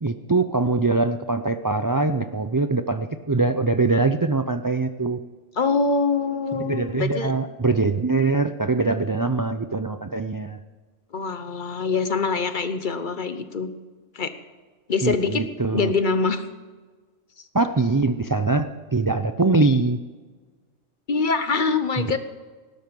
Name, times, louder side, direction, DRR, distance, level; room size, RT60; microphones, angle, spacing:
voice 1, 0.0-5.2 6.6-10.6 15.0-15.9 17.5-20.0 22.0-22.2, right 3 dB, 35° right, 9 dB, 0.3 m, -23 dB
voice 2, 5.6-7.3 11.1-13.7 14.1-14.3 14.9-15.4 15.7-16.4 21.1-22.2, left 4 dB, 45° left, 11 dB, 1.0 m, -24 dB
18.5 x 12.0 x 5.3 m, 1.4 s
omnidirectional pair, 1.3 m